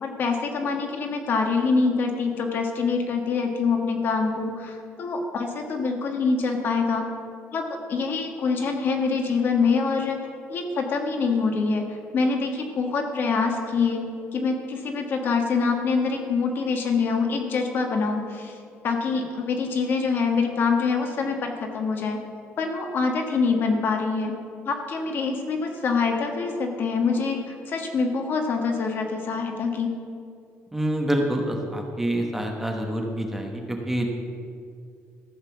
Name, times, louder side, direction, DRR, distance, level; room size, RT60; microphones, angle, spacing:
voice 1, 0.0-7.1 7.5-10.2 10.5-11.9 12.1-14.1 14.3-18.5 18.8-22.2 22.6-24.3 24.6-29.9, left 4 dB, 45° left, 3 dB, 1.4 m, -25 dB
voice 2, 30.7-34.1, right 1 dB, 5° right, 1 dB, 1.0 m, -26 dB
14.0 x 6.7 x 7.1 m, 2.3 s
cardioid pair, 165°, 5 cm